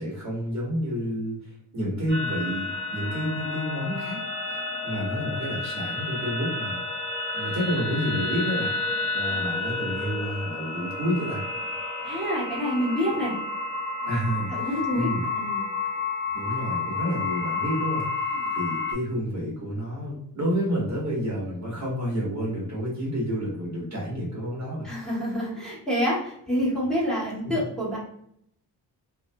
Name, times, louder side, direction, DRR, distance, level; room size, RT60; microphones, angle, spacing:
voice 1, 0.0-4.2 4.5-6.8 7.3-8.7 9.1-11.4 14.0-15.2 16.3-24.9 27.4-27.6, equal, 40° right, -4 dB, 1.2 m, -30 dB
sound 1, 2.1-18.9, left 3 dB, 25° right, 0.9 m, -30 dB
voice 2, 12.0-13.3 14.5-15.1 15.3-15.7 18.3-18.4 24.8-28.0, equal, ahead, -8 dB, 1.3 m, -27 dB
2.7 x 2.4 x 2.2 m, 0.70 s
cardioid pair, 75°, 42 cm